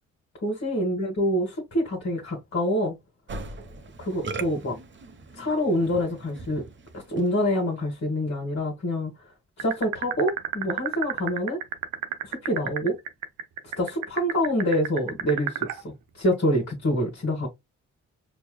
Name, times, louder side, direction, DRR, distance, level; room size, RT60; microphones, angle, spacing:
voice 1, 0.4-3.0 4.0-4.8 5.3-6.6 6.9-9.1 9.6-11.6 12.2-13.0 13.8-17.5, equal, 45° left, 1.7 m, -26 dB
Musical instrument, 3.3-7.5, right 3 dB, 35° right, 0.9 m, -40 dB
sound 1, 9.6-15.8, right 11 dB, 85° right, 0.7 m, -29 dB
4.4 x 3.0 x 2.2 m
supercardioid pair, 50°, 32 cm